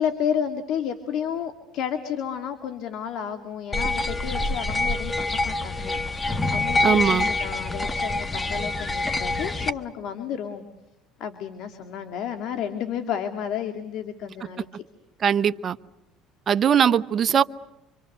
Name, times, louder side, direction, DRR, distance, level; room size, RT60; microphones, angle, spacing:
voice 1, 0.0-6.0 6.5-10.6 11.2-14.8, left 8 dB, 65° left, 7 dB, 2.1 m, -31 dB
sound 1, 3.7-9.7, left 2 dB, 20° left, 1.3 m, -26 dB
voice 2, 6.8-7.3 15.2-15.8 16.5-17.4, right 8 dB, 40° right, 12 dB, 0.9 m, -20 dB
27.5 x 25.5 x 6.6 m, 0.93 s
supercardioid pair, 100°, 0 cm